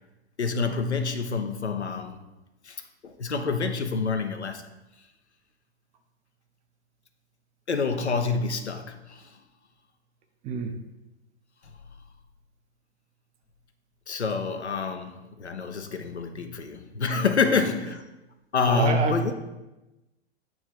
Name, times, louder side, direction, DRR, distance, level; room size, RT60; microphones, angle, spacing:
voice 1, 0.4-2.2 2.6-4.7 7.7-9.3 14.1-18.0 18.5-19.3, left 4 dB, 80° left, 0.8 m, -27 dB
voice 2, 10.4-10.7 17.4-17.5 18.7-19.3, right 6 dB, 20° right, 0.6 m, -28 dB
8.9 x 3.1 x 4.7 m
figure-of-eight pair, 105°, 33 cm